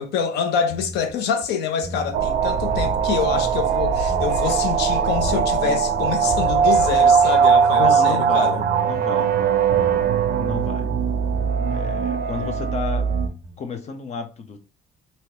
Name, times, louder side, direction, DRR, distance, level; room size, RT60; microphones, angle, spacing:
voice 1, 0.0-8.6, left 7 dB, 80° left, 0.7 m, -26 dB
sound 1, 0.7-1.2 1.4-1.5 1.8-2.3 2.6-3.7 4.1-4.5 4.8-5.6 5.9-9.0 9.3-12.1 12.4-12.7 13.1-13.6, equal, 15° right, 1.5 m, -37 dB
sound 2, 2.1-13.3, right 7 dB, 60° right, 0.4 m, -20 dB
sound 3, 2.6-3.5 3.8-4.8 5.1-6.0 6.3-7.3, left 3 dB, 5° left, 0.9 m, -32 dB
voice 2, 7.7-9.4 10.3-10.9 11.7-13.1 13.6-14.6, left 5 dB, 40° left, 0.8 m, -31 dB
3.2 x 2.8 x 2.8 m
cardioid pair, 110°, 17 cm